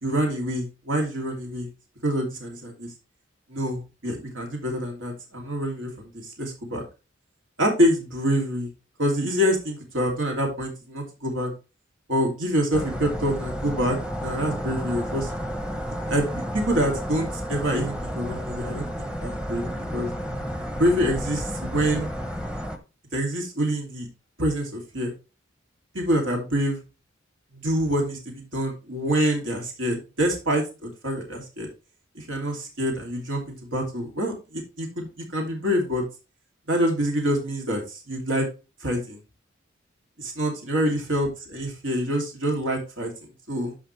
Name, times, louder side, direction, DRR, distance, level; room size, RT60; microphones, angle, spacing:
voice 1, 0.0-1.7 2.0-2.9 3.5-6.8 7.6-8.7 9.0-11.5 12.1-15.3 16.1-20.1 20.8-22.1 23.1-24.1 24.4-25.1 25.9-26.8 27.5-31.7 32.1-36.0 36.7-38.5 38.8-39.2 40.2-43.1 43.5-43.7, equal, 75° right, 1 dB, 2.9 m, -26 dB
sound 1, 12.7-22.8, equal, 5° right, 0.9 m, -31 dB
13.0 x 5.0 x 3.3 m, 0.30 s
head